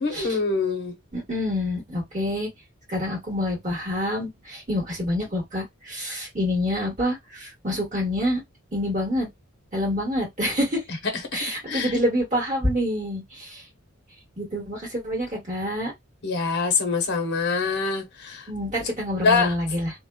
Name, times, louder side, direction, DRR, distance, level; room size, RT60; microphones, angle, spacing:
voice 1, 0.0-1.0 11.3-11.9 16.2-18.4 19.2-19.5, left 4 dB, 50° left, 0.9 m, -24 dB
voice 2, 1.1-2.5 2.9-8.4 8.7-9.3 9.7-10.8 11.3-13.6 14.4-15.9 18.5-19.9, left 1 dB, 35° right, 1.6 m, -27 dB
2.7 x 2.2 x 2.3 m
head